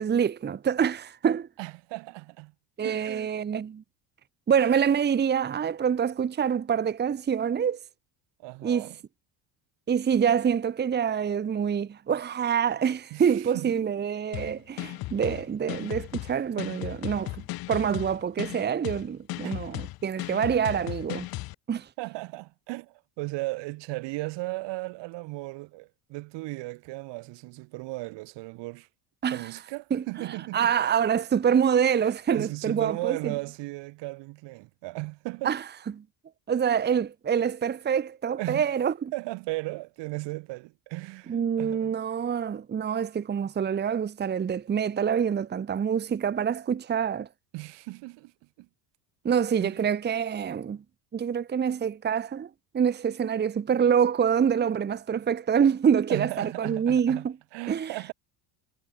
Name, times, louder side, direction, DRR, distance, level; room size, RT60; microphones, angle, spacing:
voice 1, 0.0-1.5 2.8-3.8 4.5-7.8 8.6-8.9 9.9-17.4 17.7-21.3 21.7-21.8 29.2-29.5 29.9-33.3 35.4-35.6 36.0-36.1 36.5-39.1 41.3-47.3 49.2-50.8 51.1-57.3 57.7-57.9, right 7 dB, 25° right, 1.1 m, -26 dB
voice 2, 1.6-2.5 2.8-3.3 8.4-9.0 13.1-13.9 19.4-19.5 22.0-28.9 29.3-30.7 32.0-35.5 38.4-38.7 39.1-42.0 47.5-48.3 48.6-48.7 49.6-49.8 56.1-58.1, right 22 dB, 70° right, 2.2 m, -36 dB
sound 1, 14.3-21.5, left 18 dB, 50° left, 0.9 m, -36 dB
cardioid pair, 130°, 44 cm